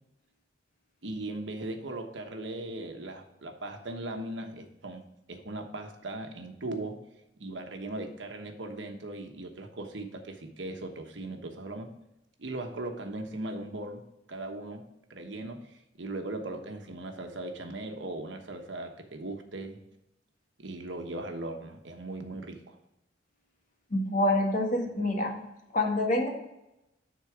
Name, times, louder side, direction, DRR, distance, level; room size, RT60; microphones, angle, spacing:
voice 1, 1.0-5.0 5.3-7.0 7.4-11.9 12.4-19.8 20.6-22.8, right 2 dB, 80° right, 4 dB, 1.2 m, -38 dB
voice 2, 23.9-25.4 25.7-26.3, left 1 dB, 45° left, 1 dB, 1.6 m, -26 dB
10.0 x 4.1 x 4.9 m, 0.88 s
head